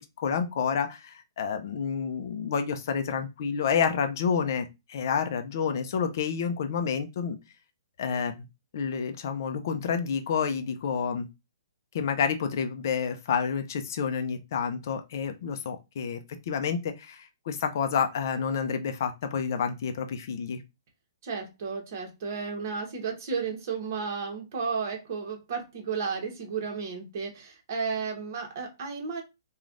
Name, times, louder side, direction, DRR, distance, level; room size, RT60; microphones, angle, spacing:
voice 1, 0.2-7.4 8.0-8.3 8.7-11.3 11.9-16.2 16.5-20.6, left 6 dB, 50° left, 6 dB, 0.5 m, -29 dB
voice 2, 21.2-29.2, right 5 dB, 45° right, 2 dB, 1.1 m, -33 dB
3.2 x 2.3 x 2.5 m, 0.24 s
hypercardioid pair, 160°, 2 cm